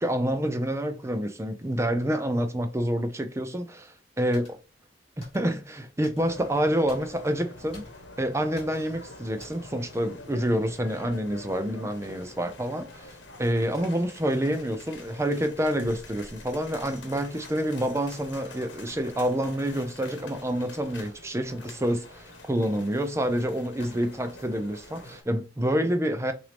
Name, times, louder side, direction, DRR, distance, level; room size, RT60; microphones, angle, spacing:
voice 1, 0.0-3.9 4.2-4.5 5.2-7.8 8.2-13.1 13.4-26.3, equal, 15° right, 0.5 m, -28 dB
sound 1, 4.3-4.7 5.2-5.7 6.0-6.5 6.9-7.4 7.7-8.2 8.6-9.0 9.4-9.8 11.1-11.3 12.1-12.2 12.7-13.3 13.7-13.8, left 1 dB, 35° left, 2.7 m, -52 dB
sound 2, 6.2-25.2, left 2 dB, 70° left, 1.1 m, -46 dB
5.8 x 2.7 x 3.4 m
head